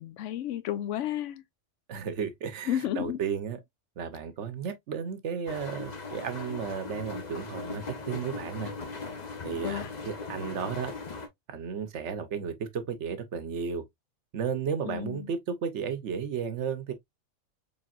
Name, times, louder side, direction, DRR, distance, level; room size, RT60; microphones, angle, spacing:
voice 1, 0.0-1.4 2.7-3.2 9.6-9.9 14.8-15.3, left 11 dB, 75° left, 0.9 m, -32 dB
voice 2, 1.9-3.6 4.0-8.7 9.4-10.9 11.5-13.8 14.3-16.9, right 7 dB, 70° right, 1.0 m, -33 dB
sound 1, 5.5-11.3, left 4 dB, 40° left, 0.8 m, -39 dB
4.1 x 3.4 x 2.3 m
omnidirectional pair, 1.3 m